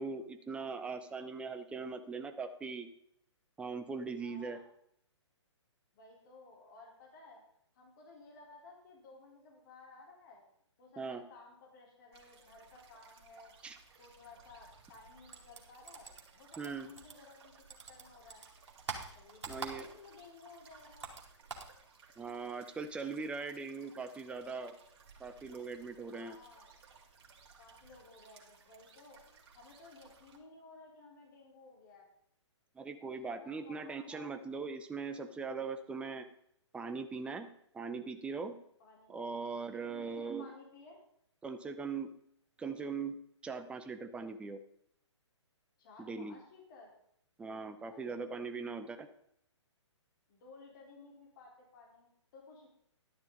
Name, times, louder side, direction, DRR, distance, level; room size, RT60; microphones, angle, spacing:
voice 1, 0.0-2.9 3.6-4.6 11.0-11.2 13.6-13.8 16.6-16.9 19.5-19.9 22.2-24.7 25.2-26.4 32.8-36.3 36.7-37.5 37.7-38.6 39.1-40.5 41.4-42.1 42.6-43.2 43.4-44.6 46.0-46.4 47.4-49.1, right 4 dB, 5° right, 8 dB, 0.7 m, -40 dB
voice 2, 4.2-4.6 5.9-7.4 7.7-10.4 10.8-13.5 14.0-17.5 17.9-18.4 19.1-21.1 26.1-26.7 27.6-32.1 33.1-34.4 38.8-39.1 39.7-41.0 45.8-46.9 47.9-48.5 50.3-52.7, left 3 dB, 40° left, -1 dB, 4.0 m, -56 dB
sound 1, 12.1-30.4, right 5 dB, 55° right, 2.6 m, -61 dB
sound 2, 15.3-17.4 17.7-20.2 20.5-21.8, right 4 dB, 70° right, 2.4 m, -45 dB
11.5 x 10.5 x 4.0 m, 0.70 s
figure-of-eight pair, 130°, 16 cm